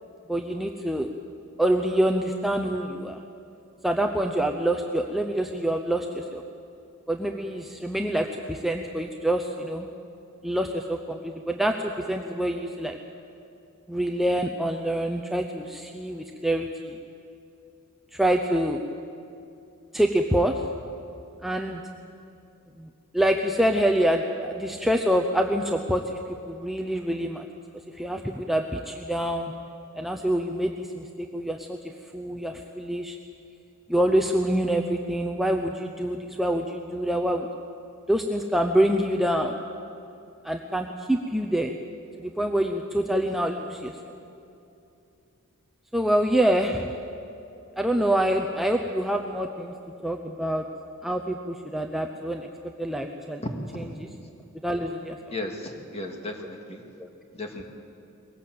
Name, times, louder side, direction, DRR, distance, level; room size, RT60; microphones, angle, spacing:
voice 1, 0.3-1.1 1.6-3.2 3.8-6.4 7.1-9.9 10.4-13.0 13.9-17.0 18.1-18.8 19.9-20.6 21.4-21.8 22.8-26.2 26.5-27.4 27.9-29.5 29.9-31.8 32.1-33.2 33.9-37.5 38.1-39.6 40.4-41.8 42.2-44.0 45.9-46.9 47.8-49.7 50.0-50.7 51.0-52.5 52.8-53.4 53.7-54.1 54.6-55.3 57.0-57.1, right 1 dB, ahead, 3 dB, 0.7 m, -26 dB
voice 2, 55.3-56.8 57.3-57.6, left 2 dB, 30° left, 3 dB, 2.1 m, -35 dB
21.5 x 17.5 x 7.8 m, 2.8 s
head